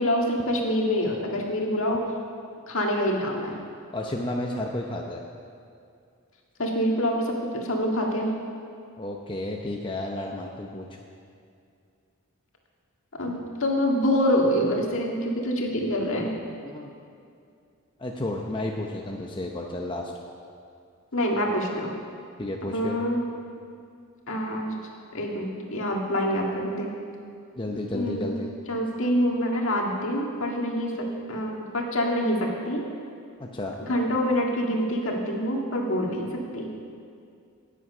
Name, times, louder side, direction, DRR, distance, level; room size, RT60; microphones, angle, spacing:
voice 1, 0.0-2.0 2.7-3.6 6.6-8.3 13.2-16.3 21.1-21.9 22.7-23.2 24.3-24.7 25.1-26.9 27.9-28.3 28.7-30.9 31.3-32.8 33.8-36.3 36.5-36.7, equal, 60° left, 0 dB, 1.9 m, -26 dB
voice 2, 3.9-5.2 9.0-10.9 16.7-16.9 18.0-20.1 22.4-22.9 27.6-28.5 33.4-33.8, left 1 dB, 20° left, 0 dB, 0.7 m, -32 dB
18.0 x 7.7 x 5.5 m, 2.4 s
head